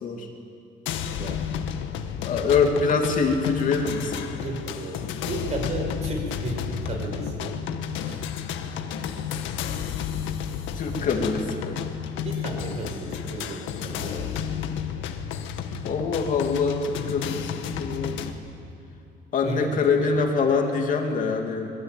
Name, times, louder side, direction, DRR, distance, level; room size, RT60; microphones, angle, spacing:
sound 1, 0.9-18.3, left 8 dB, 90° left, 1.9 m, -31 dB
voice 1, 1.2-1.5 4.4-7.6 8.0-8.2 12.2-14.5 19.4-20.1, right 3 dB, 35° right, 2 dB, 5.8 m, -34 dB
voice 2, 2.2-4.3 10.7-11.8 15.8-18.3 19.3-21.7, left 4 dB, 45° left, 2 dB, 2.7 m, -24 dB
26.0 x 22.5 x 9.4 m, 2.8 s
cardioid pair, 170°, 19 cm